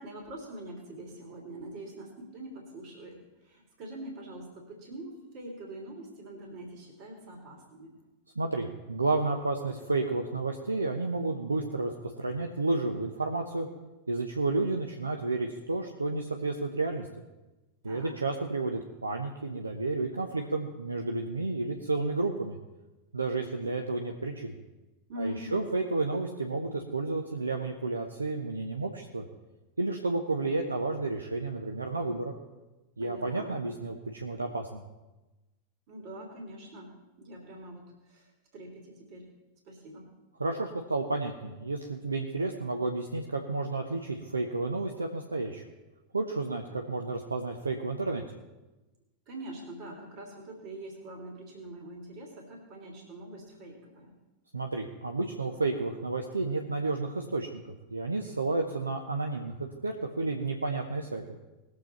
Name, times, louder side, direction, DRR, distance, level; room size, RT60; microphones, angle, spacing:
voice 1, 0.0-8.0 17.8-18.2 25.1-25.6 33.0-33.6 35.9-36.9 37.2-39.2 39.7-40.1 49.3-54.1, right 1 dB, 40° right, 1 dB, 2.8 m, -43 dB
voice 2, 8.4-11.9 12.2-13.7 14.1-17.1 17.8-22.6 23.1-24.5 25.2-29.2 29.8-32.3 33.0-34.8 40.4-45.6 46.1-48.2 54.5-57.6 57.9-61.2, right 3 dB, 80° right, 3 dB, 0.9 m, -31 dB
19.5 x 7.7 x 4.5 m, 1.1 s
figure-of-eight pair, 90°, 0 cm